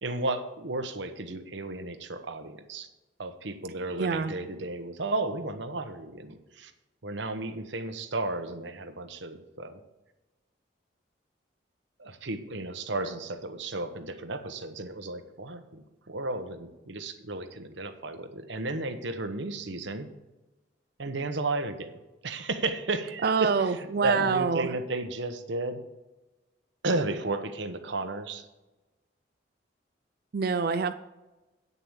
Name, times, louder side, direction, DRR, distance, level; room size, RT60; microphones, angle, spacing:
voice 1, 0.0-2.9 3.2-6.7 7.0-9.8 12.0-20.1 21.0-25.8 26.8-28.5, right 2 dB, 70° right, 7 dB, 1.0 m, -33 dB
voice 2, 4.0-4.3 23.2-24.7 30.3-30.9, right 5 dB, 55° right, 7 dB, 0.4 m, -26 dB
8.6 x 6.8 x 7.4 m, 1.1 s
head